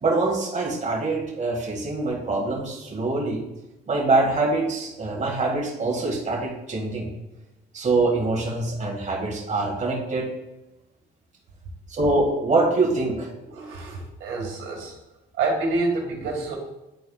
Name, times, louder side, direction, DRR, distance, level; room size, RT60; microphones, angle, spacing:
voice 1, 0.0-3.4 3.9-7.1 7.7-10.3 11.9-13.3, right 2 dB, 35° right, -2 dB, 1.9 m, -24 dB
voice 2, 13.5-14.9 15.3-16.5, right 3 dB, 85° right, -1 dB, 1.8 m, -27 dB
10.5 x 4.3 x 2.3 m, 0.97 s
cardioid pair, 90°, 20 cm